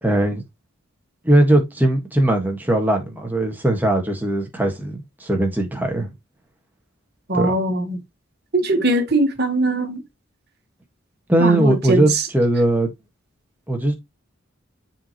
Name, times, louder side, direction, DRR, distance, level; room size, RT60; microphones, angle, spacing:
voice 1, 0.0-0.4 1.2-6.1 7.3-7.6 11.3-12.9 13.7-13.9, right 1 dB, 10° right, 1.6 m, -19 dB
voice 2, 7.3-8.0 8.5-10.0 11.4-12.2, right 2 dB, 55° right, 1.5 m, -20 dB
7.3 x 4.6 x 3.0 m
head